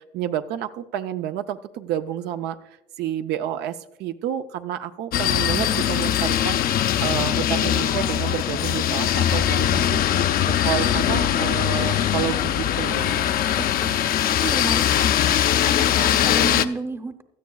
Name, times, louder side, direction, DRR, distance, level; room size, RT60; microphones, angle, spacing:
voice 1, 0.0-2.6 3.0-13.4, right 10 dB, 80° right, 8 dB, 0.6 m, -30 dB
sound 1, 5.1-16.7, left 10 dB, 60° left, 0.5 m, -21 dB
voice 2, 13.5-14.0 14.3-15.4 15.6-17.2, right 3 dB, 15° right, 9 dB, 0.7 m, -32 dB
17.0 x 12.5 x 2.3 m, 0.97 s
cardioid pair, 110°, 17 cm